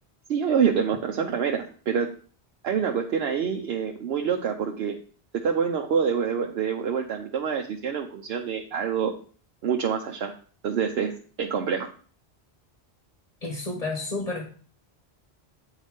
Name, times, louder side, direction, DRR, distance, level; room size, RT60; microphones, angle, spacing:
voice 1, 0.3-2.1 2.6-5.0 5.3-9.1 9.6-10.3 10.6-11.9, right 7 dB, 70° right, 2 dB, 0.9 m, -26 dB
voice 2, 13.4-14.4, left 2 dB, 40° left, 2 dB, 1.1 m, -30 dB
9.2 x 4.0 x 3.5 m, 0.43 s
omnidirectional pair, 1.1 m